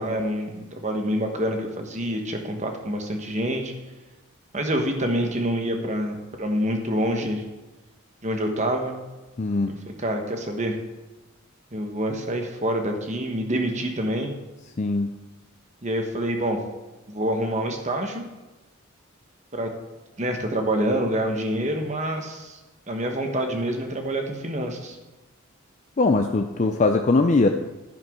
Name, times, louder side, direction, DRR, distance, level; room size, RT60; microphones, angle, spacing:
voice 1, 0.0-3.7 4.5-7.4 8.2-8.9 9.8-10.8 11.7-14.3 15.8-16.6 17.1-18.2 19.5-19.7 20.2-22.6 22.9-25.0, right 1 dB, 30° right, 4 dB, 1.2 m, -26 dB
voice 2, 9.4-9.7 14.8-15.1 26.0-27.5, left 3 dB, 35° left, 5 dB, 0.4 m, -21 dB
11.0 x 10.5 x 3.7 m, 1.1 s
head